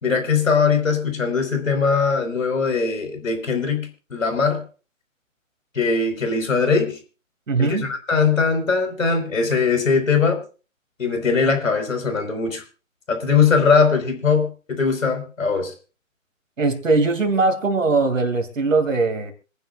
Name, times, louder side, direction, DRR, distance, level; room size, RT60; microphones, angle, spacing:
voice 1, 0.0-4.6 5.7-7.0 7.6-10.4 11.0-12.6 13.1-15.7, left 5 dB, 75° left, 4.9 m, -20 dB
voice 2, 7.5-7.9 16.6-19.3, right 3 dB, 70° right, 2.9 m, -20 dB
26.5 x 10.5 x 2.5 m
figure-of-eight pair, 145°, 40 cm